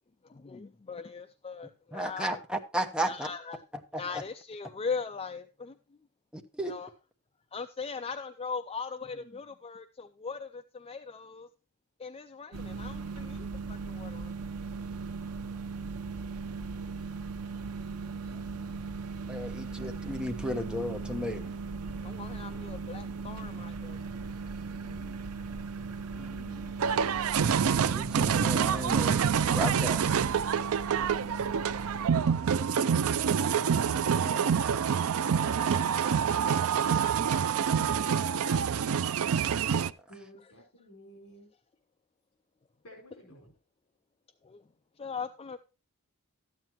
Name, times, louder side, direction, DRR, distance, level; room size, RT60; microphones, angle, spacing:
voice 1, 0.2-2.4 3.1-3.6 4.0-6.0 6.7-6.9 7.5-11.5 12.0-14.3 15.7-15.8 18.3-18.9 19.7-19.8 21.8-24.0 24.6-25.2 26.2-26.8 30.9-32.0 32.5-33.2 34.0-34.7 44.4-44.6 45.0-45.6, left 5 dB, 25° left, 0.4 m, -41 dB
voice 2, 1.9-3.3 3.9-4.2 6.3-6.7 19.3-21.5 27.7-29.2 29.4-30.2, equal, 5° right, 1.1 m, -34 dB
sound 1, 12.5-32.1, right 4 dB, 90° right, 0.9 m, -38 dB
sound 2, 26.8-39.9, right 7 dB, 65° right, 0.4 m, -27 dB
voice 3, 40.1-41.5 42.8-43.5, equal, 65° left, 4.9 m, -52 dB
13.0 x 9.2 x 3.0 m
head